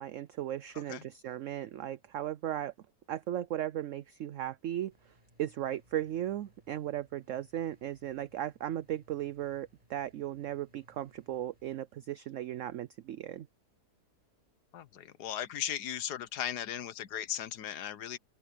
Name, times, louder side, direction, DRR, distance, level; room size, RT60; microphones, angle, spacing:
voice 1, 0.0-2.7 3.1-4.9 5.4-13.5, right 12 dB, 65° right, 0.8 m, -36 dB
sound 1, 4.9-11.8, equal, 25° right, 7.5 m, -66 dB
voice 2, 14.7-18.2, left 10 dB, 80° left, 1.5 m, -37 dB
omnidirectional pair, 1.7 m